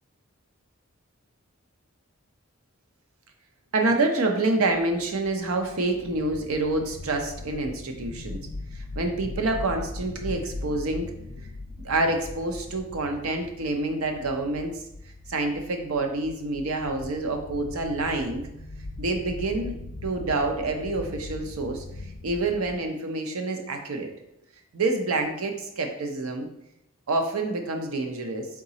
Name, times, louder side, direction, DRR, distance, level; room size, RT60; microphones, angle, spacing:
voice 1, 3.7-8.4 9.0-11.1 11.8-14.7 15.3-18.4 19.0-19.7 20.0-21.8 22.2-24.1 24.7-26.5 27.1-28.5, right 2 dB, 85° right, 4 dB, 0.6 m, -27 dB
sound 1, 4.7-22.8, left 2 dB, 65° left, 0.5 m, -40 dB
4.0 x 3.6 x 2.8 m, 0.81 s
head